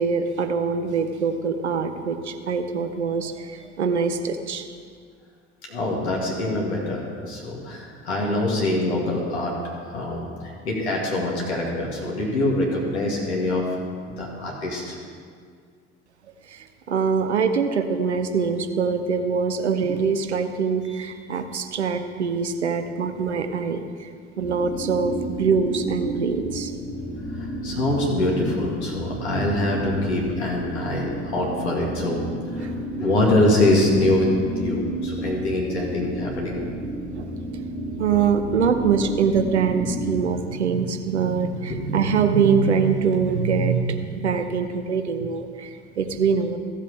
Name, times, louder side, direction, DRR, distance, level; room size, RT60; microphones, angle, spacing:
voice 1, 0.0-4.7 16.5-24.1 24.4-26.7 32.6-32.7 37.1-37.3 38.0-46.6, right 5 dB, 80° right, 8 dB, 0.7 m, -23 dB
voice 2, 5.7-9.5 9.9-10.3 10.6-13.6 14.0-15.0 26.9-27.0 27.6-32.2 32.6-32.7 33.0-34.3 34.6-36.6, left 1 dB, 75° left, -2 dB, 2.2 m, -24 dB
sound 1, 24.4-40.2, right 1 dB, 25° left, 3.1 m, -32 dB
15.0 x 7.4 x 3.5 m, 2.1 s
figure-of-eight pair, 60°, 34 cm